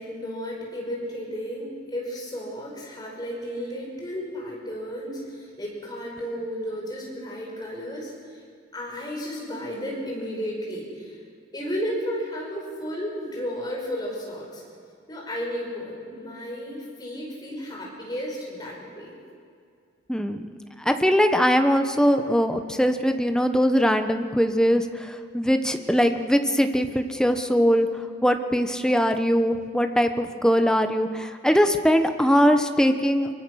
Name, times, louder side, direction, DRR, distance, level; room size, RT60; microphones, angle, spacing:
voice 1, 0.0-8.4 8.7-11.2 11.5-14.6 15.1-19.1, equal, 25° left, -2 dB, 5.9 m, -33 dB
voice 2, 20.1-20.4 20.8-27.9 28.2-33.3, equal, 5° left, 7 dB, 1.1 m, -21 dB
25.0 x 24.0 x 6.5 m, 2.3 s
head